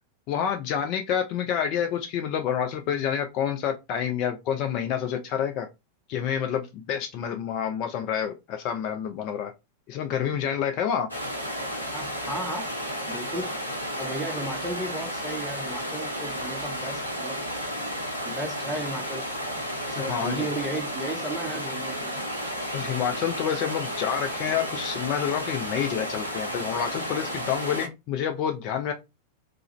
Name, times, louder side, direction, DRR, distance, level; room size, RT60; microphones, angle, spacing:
voice 1, 0.3-5.7 6.1-9.5 9.9-11.1 20.0-20.5 22.7-28.9, left 8 dB, 40° left, 0.3 m, -28 dB
sound 1, 11.1-27.9, equal, 85° left, 0.6 m, -32 dB
voice 2, 11.9-12.7 13.1-13.5 14.0-17.4 18.2-19.3 19.9-22.2, right 1 dB, 5° right, 0.7 m, -34 dB
2.3 x 2.1 x 2.9 m
figure-of-eight pair, 90°, 0 cm